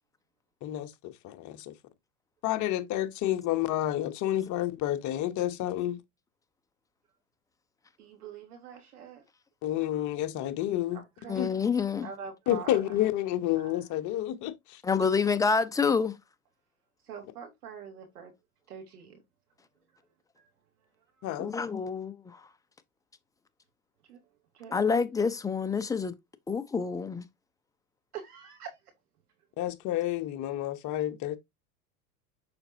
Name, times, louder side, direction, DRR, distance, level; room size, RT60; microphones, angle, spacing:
voice 1, 0.6-1.7 2.4-6.0 9.6-11.0 11.4-11.5 12.5-14.8 21.2-21.5 29.6-31.4, left 13 dB, 40° left, 1.0 m, -30 dB
voice 2, 8.0-9.2 10.9-11.5 12.0-13.0 13.6-13.7 17.0-18.3 18.7-19.2 20.4-20.5 21.2-21.3 24.1-24.2 24.5-24.8 28.1-28.8, right 7 dB, 80° right, 2.8 m, -44 dB
voice 3, 11.3-12.1 14.8-16.1 21.4-22.4 24.7-26.1 26.5-27.3, left 5 dB, 10° left, 0.5 m, -27 dB
6.8 x 5.2 x 2.7 m
hypercardioid pair, 105°, 45 cm